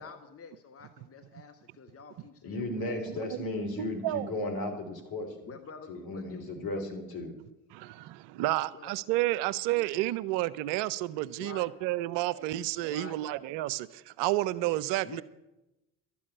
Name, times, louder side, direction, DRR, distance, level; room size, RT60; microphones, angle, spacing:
voice 1, 0.0-3.3 5.4-6.8 8.7-9.0 11.4-11.7 12.8-13.2 15.0-15.2, left 5 dB, 35° left, 7 dB, 1.3 m, -48 dB
voice 2, 2.4-5.5 5.9-7.3 9.7-9.8, left 2 dB, 55° left, 5 dB, 3.5 m, -35 dB
voice 3, 3.1-3.4 3.8-4.3 7.7-15.2, right 16 dB, 75° right, 18 dB, 0.7 m, -31 dB
12.0 x 7.2 x 9.8 m, 0.97 s
hypercardioid pair, 55°, 42 cm